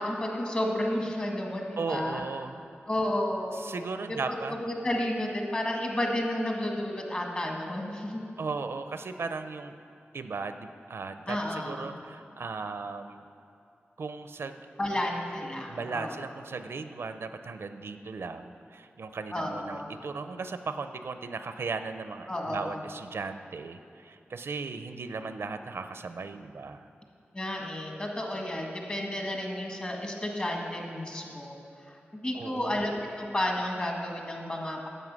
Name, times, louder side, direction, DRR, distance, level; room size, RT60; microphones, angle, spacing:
voice 1, 0.0-2.2 2.9-3.6 4.1-4.2 4.6-8.3 11.3-11.9 14.8-16.1 19.3-19.9 22.3-22.8 27.3-31.5 31.9-32.9 33.2-34.9, left 1 dB, 30° left, 0 dB, 1.7 m, -32 dB
voice 2, 1.8-2.6 3.5-4.6 8.4-9.8 10.1-13.3 14.0-14.6 14.9-15.0 15.7-26.9 32.3-32.8, right 4 dB, 75° right, 9 dB, 0.5 m, -37 dB
11.0 x 7.9 x 6.1 m, 2.5 s
wide cardioid pair, 110°, 4 cm